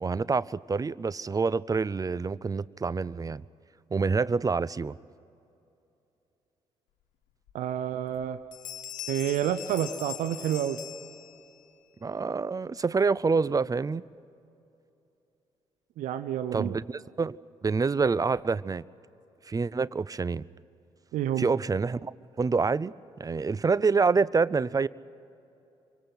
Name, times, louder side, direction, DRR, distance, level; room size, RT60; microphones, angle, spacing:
voice 1, 0.0-3.5 3.9-5.0 12.0-14.0 16.5-17.4 17.6-18.8 19.5-20.5 21.4-24.9, right 4 dB, 25° right, 21 dB, 0.5 m, -27 dB
sound 1, 7.5-7.6 8.0-8.2 8.5-11.7, left 11 dB, 65° left, 1.3 m, -41 dB
voice 2, 7.5-8.4 9.1-10.8 16.0-16.8 21.1-21.5, right 10 dB, 65° right, 12 dB, 0.7 m, -29 dB
27.0 x 24.5 x 6.0 m, 2.8 s
hypercardioid pair, 40°, 14 cm